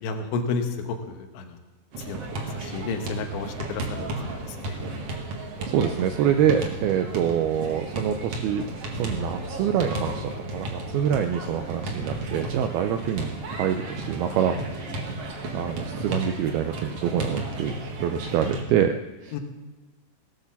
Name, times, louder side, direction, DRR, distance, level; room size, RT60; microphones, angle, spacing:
voice 1, 0.0-1.6 2.0-4.8 19.3-19.4, left 4 dB, 85° left, 5 dB, 3.6 m, -32 dB
sound 1, 1.9-18.6, right 2 dB, 50° right, 2.1 m, -33 dB
voice 2, 5.6-14.8 15.5-17.7 18.0-19.3, right 9 dB, 85° right, 7 dB, 2.2 m, -26 dB
18.0 x 9.0 x 7.2 m, 1.2 s
omnidirectional pair, 5.2 m